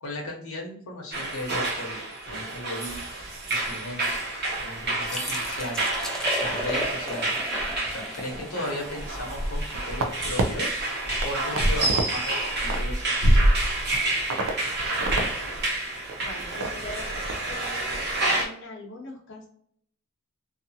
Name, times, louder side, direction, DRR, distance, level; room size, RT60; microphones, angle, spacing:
voice 1, 0.0-2.0 2.2-5.8 6.4-7.3 7.9-10.7 11.2-13.4, left 1 dB, 90° left, -1 dB, 0.8 m, -36 dB
sound 1, 1.1-18.4, right 2 dB, 55° right, 1.0 m, -29 dB
sound 2, 5.1-10.7, left 1 dB, 5° left, 0.4 m, -37 dB
sound 3, 9.3-10.5 10.9-12.1 12.4-13.9 14.3-14.5 14.8-15.3 15.6-15.7 16.1-16.7 17.0-17.4 17.7-18.0, right 1 dB, 75° right, 0.5 m, -24 dB
voice 2, 16.2-17.1 17.4-18.1 18.4-19.5, left 2 dB, 60° left, -2 dB, 0.8 m, -41 dB
2.8 x 2.4 x 2.6 m, 0.66 s
head